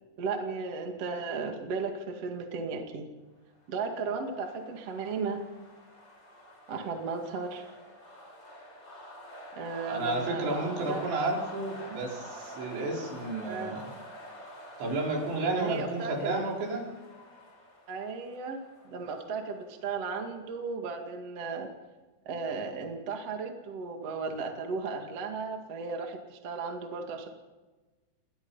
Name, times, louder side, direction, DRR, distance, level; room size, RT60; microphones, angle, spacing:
voice 1, 0.2-3.1 3.7-5.4 6.7-7.7 9.5-11.0 13.5-13.8 15.4-16.4 17.9-18.6 18.8-21.7 22.3-27.3, right 4 dB, 45° right, 3 dB, 2.2 m, -35 dB
sound 1, 3.6-20.3, equal, 20° left, 5.5 m, -48 dB
voice 2, 9.9-13.9 14.8-16.9, right 2 dB, 60° right, -1 dB, 6.9 m, -32 dB
29.0 x 21.0 x 5.7 m, 1.2 s
omnidirectional pair, 5.9 m